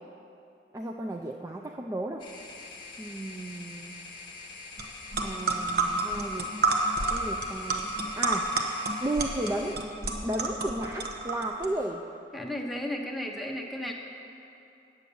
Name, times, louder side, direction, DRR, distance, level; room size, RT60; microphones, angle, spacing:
voice 1, 0.7-2.3 3.0-3.9 5.2-6.5 7.1-8.5 9.0-9.8 10.2-12.0, right 1 dB, 15° right, 1 dB, 0.4 m, -34 dB
sound 1, 2.2-9.8, left 3 dB, 25° left, 1.3 m, -45 dB
sound 2, 4.8-4.9 5.1-11.7, right 3 dB, 55° right, 1.0 m, -29 dB
voice 2, 12.3-13.9, left 1 dB, ahead, 0 dB, 0.9 m, -34 dB
9.3 x 8.2 x 7.0 m, 2.7 s
head